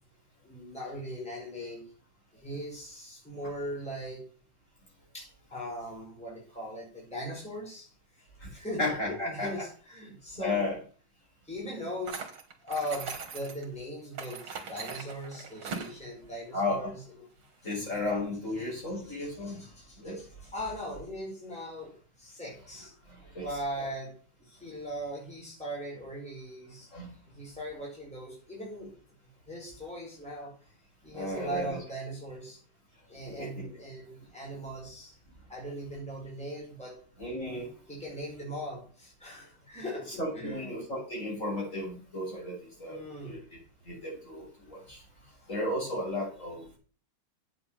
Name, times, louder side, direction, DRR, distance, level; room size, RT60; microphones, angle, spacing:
voice 1, 0.4-1.9 2.3-4.3 5.1-10.7 11.4-12.3 12.6-17.3 19.2-22.9 23.4-24.1 24.4-26.9 27.3-28.9 29.5-30.5 31.0-32.6 33.1-35.2 35.5-37.0 37.9-40.6 42.9-43.4, equal, 5° left, -4 dB, 4.8 m, -39 dB
voice 2, 8.8-9.5 10.4-10.8 16.5-16.9 17.6-19.6 20.0-20.2 23.3-23.5 23.8-23.9 26.9-27.1 31.1-31.8 33.3-33.5 37.2-37.7 40.2-43.4 43.9-45.0 45.5-46.8, left 2 dB, 35° left, -3 dB, 6.2 m, -34 dB
sound 1, 12.1-13.6 14.1-16.0, right 5 dB, 80° right, 2.5 m, -40 dB
8.4 x 6.8 x 7.4 m, 0.40 s
omnidirectional pair, 2.3 m